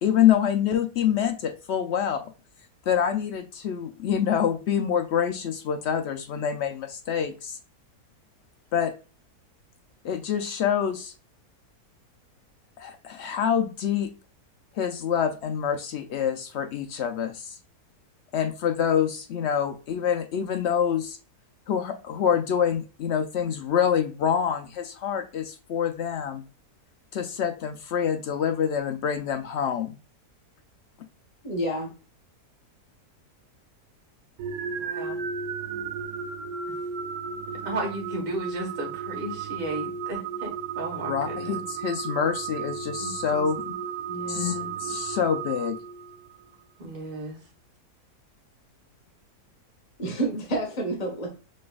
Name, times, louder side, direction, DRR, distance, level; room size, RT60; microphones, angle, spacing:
voice 1, 0.0-2.2 2.9-7.6 8.7-8.9 10.0-11.1 12.8-14.1 14.8-17.6 18.3-21.2 21.7-26.4 27.1-30.0 41.1-43.8 44.3-45.8, left 8 dB, 75° left, 6 dB, 0.6 m, -26 dB
voice 2, 31.4-31.9 50.0-51.3, right 1 dB, 25° left, 0 dB, 1.2 m, -28 dB
sound 1, 34.4-46.4, right 6 dB, 70° right, 1.1 m, -34 dB
voice 3, 34.7-35.2 36.7-36.8 37.6-41.6 43.0-43.5 44.1-44.7 46.8-47.4, right 2 dB, 35° right, 0 dB, 1.4 m, -35 dB
5.3 x 3.2 x 2.3 m, 0.34 s
omnidirectional pair, 1.7 m